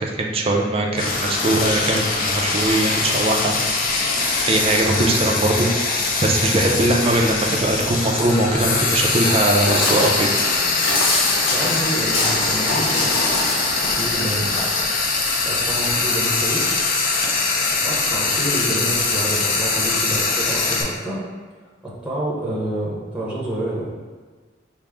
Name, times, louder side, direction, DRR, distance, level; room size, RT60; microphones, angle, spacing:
voice 1, 0.0-3.6 4.4-10.3, right 1 dB, 30° right, 0 dB, 0.4 m, -21 dB
Frying (food), 1.0-20.8, left 3 dB, 45° left, 0.5 m, -22 dB
Walk footsteps, 9.0-14.8, left 2 dB, 90° left, 0.6 m, -25 dB
voice 2, 11.5-13.2 14.0-14.5 15.4-16.8 17.4-21.2 21.8-23.9, right 1 dB, 5° right, -7 dB, 0.7 m, -28 dB
4.8 x 2.0 x 3.4 m, 1.5 s
head